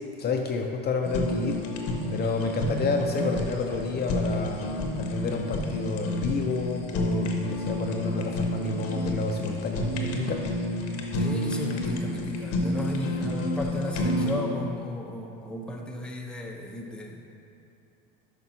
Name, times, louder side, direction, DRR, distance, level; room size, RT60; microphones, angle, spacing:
voice 1, 0.2-1.7 2.1-4.6 5.0-10.4 12.8-12.9, left 4 dB, 35° left, 2 dB, 0.6 m, -30 dB
Fire, 1.0-14.3, left 1 dB, 55° left, 1.0 m, -30 dB
voice 2, 11.1-17.2, equal, 5° left, 0 dB, 0.7 m, -35 dB
11.0 x 5.1 x 2.8 m, 2.7 s
hypercardioid pair, 85°, 29 cm